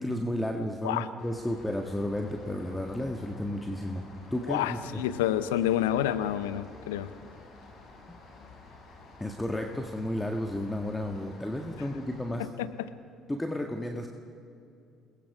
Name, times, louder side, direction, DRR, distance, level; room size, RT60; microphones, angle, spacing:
voice 1, 0.0-4.0 4.3-5.0 8.1-8.2 9.2-12.5 13.3-14.1, left 1 dB, 10° left, 3 dB, 1.6 m, -32 dB
Rain, 1.2-12.3, left 3 dB, 60° left, 7.3 m, -51 dB
voice 2, 4.5-7.1 12.6-12.9, left 12 dB, 80° left, 13 dB, 0.6 m, -28 dB
28.5 x 20.5 x 4.8 m, 2.6 s
hypercardioid pair, 55°, 0 cm